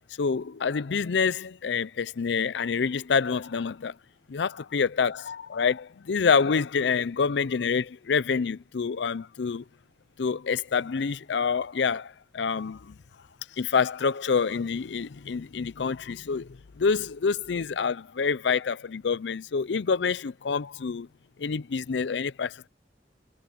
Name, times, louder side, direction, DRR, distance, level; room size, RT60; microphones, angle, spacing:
voice 1, 0.2-3.9 4.3-9.6 10.2-13.0 13.6-21.1 21.4-22.7, left 5 dB, 70° left, 0.5 m, -27 dB
head